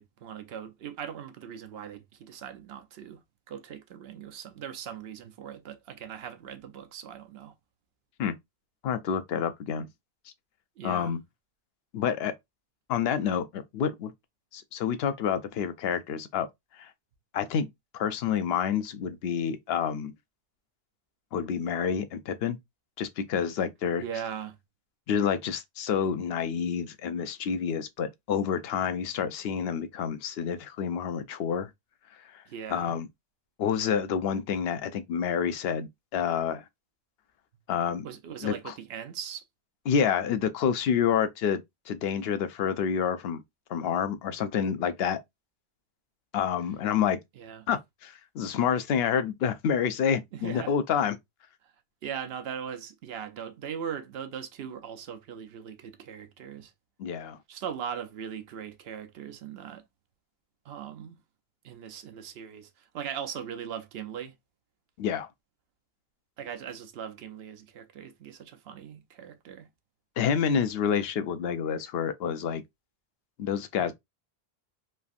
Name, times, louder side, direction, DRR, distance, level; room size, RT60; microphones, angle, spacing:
voice 1, 0.0-3.2 3.5-7.5 10.8-11.1 24.0-24.5 32.5-32.9 38.0-39.4 47.4-47.7 50.3-50.7 52.0-56.7 57.5-59.8 60.6-61.2 61.6-64.3 66.4-69.7 73.8-73.9, right 8 dB, 75° right, 0.8 m, -39 dB
voice 2, 8.8-9.9 10.8-11.2 11.9-12.3 12.9-14.1 14.5-16.5 16.8-16.9 17.3-20.1 21.3-22.6 23.0-24.0 25.1-31.7 32.7-33.1 33.6-36.6 37.7-38.1 38.4-38.7 39.9-43.4 43.7-45.2 46.3-47.2 47.7-51.2 57.0-57.4 65.0-65.3 70.2-72.6 73.4-73.9, left 7 dB, 75° left, 0.8 m, -28 dB
3.3 x 2.4 x 2.4 m
omnidirectional pair, 1.1 m